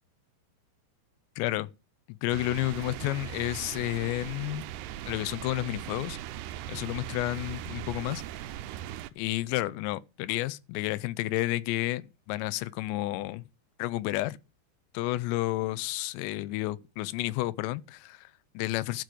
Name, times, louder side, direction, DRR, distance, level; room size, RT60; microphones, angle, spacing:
voice 1, 1.4-1.7 2.1-4.6 5.1-6.2 6.7-8.2 9.2-13.4 13.8-14.4 14.9-19.0, left 18 dB, 85° left, 2.9 m, -31 dB
sound 1, 2.3-9.1, right 12 dB, 80° right, 2.7 m, -39 dB
12.5 x 5.0 x 7.8 m
omnidirectional pair, 5.0 m